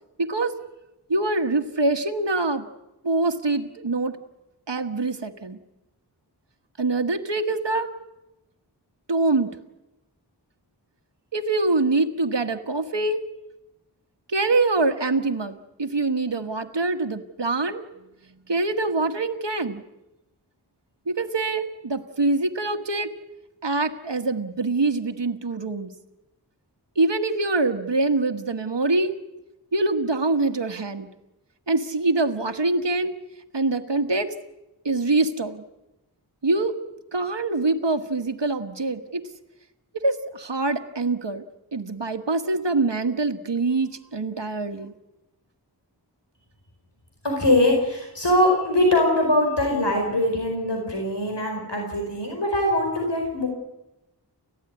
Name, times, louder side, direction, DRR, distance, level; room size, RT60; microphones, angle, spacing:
voice 1, 0.2-0.5 1.1-2.7 3.0-4.2 4.7-5.6 6.8-7.9 9.1-9.5 11.3-13.2 14.3-17.8 18.5-19.8 21.1-23.1 23.6-25.9 27.0-29.2 29.7-31.1 31.7-33.1 33.5-34.3 34.8-35.6 36.4-36.7 37.1-39.2 40.0-41.4 41.7-44.9, right 3 dB, 90° right, 6 dB, 1.4 m, -24 dB
voice 2, 47.2-53.5, left 1 dB, 80° left, 1 dB, 4.9 m, -22 dB
30.0 x 14.0 x 9.8 m, 0.97 s
wide cardioid pair, 40°, 41 cm